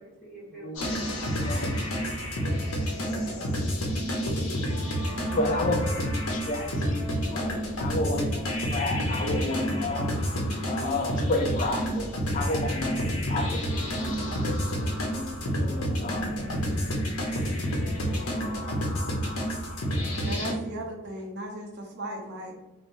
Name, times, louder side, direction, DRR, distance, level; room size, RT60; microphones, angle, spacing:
voice 1, 0.0-2.7 3.0-3.7 4.0-6.0, equal, 5° left, -8 dB, 1.2 m, -46 dB
voice 2, 0.5-1.7 5.3-10.2 10.7-16.4, left 2 dB, 35° left, 3 dB, 0.4 m, -32 dB
sound 1, 0.7-20.5, equal, 85° left, 0.7 m, -29 dB
sound 2, 4.3-5.5 7.3-8.5 9.3-10.5 11.3-12.5 13.3-14.5 15.3-16.5 17.3-18.5 19.3-19.6, right 1 dB, 20° right, 1.3 m, -51 dB
voice 3, 20.2-22.6, right 1 dB, 50° right, 2 dB, 0.5 m, -36 dB
3.0 x 2.0 x 2.5 m, 1.0 s
head